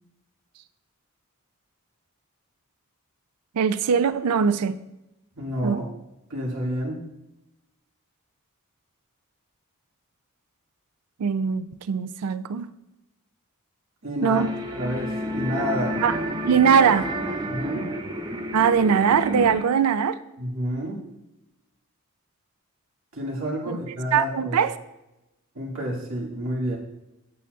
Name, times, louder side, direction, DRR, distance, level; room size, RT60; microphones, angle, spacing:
voice 1, 3.5-4.8 5.6-5.8 11.2-12.7 14.2-14.5 16.0-16.2 16.5-17.1 18.5-20.2 23.7-23.8 24.1-24.8, right 7 dB, 90° right, 0.4 m, -21 dB
voice 2, 5.4-5.8 6.3-7.0 14.0-14.4 14.7-16.0 17.4-17.9 20.4-21.0 23.1-24.6 25.6-26.8, equal, 60° right, 1.8 m, -29 dB
sound 1, 14.3-19.6, equal, 20° right, 0.5 m, -30 dB
8.4 x 8.1 x 2.4 m
head